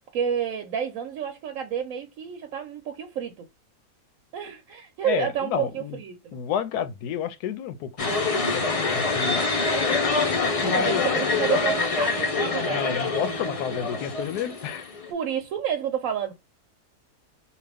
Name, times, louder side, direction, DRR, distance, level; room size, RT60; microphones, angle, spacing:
voice 1, 0.1-3.4 4.3-6.4 10.6-12.9 15.1-16.3, right 8 dB, 65° right, 1.0 m, -30 dB
voice 2, 5.0-6.0 6.3-8.7 8.9-9.5 10.6-11.1 12.7-14.9, left 8 dB, 90° left, 1.1 m, -30 dB
sound 1, 8.0-15.1, left 3 dB, 55° left, 0.4 m, -25 dB
2.9 x 2.5 x 3.3 m
omnidirectional pair, 1.6 m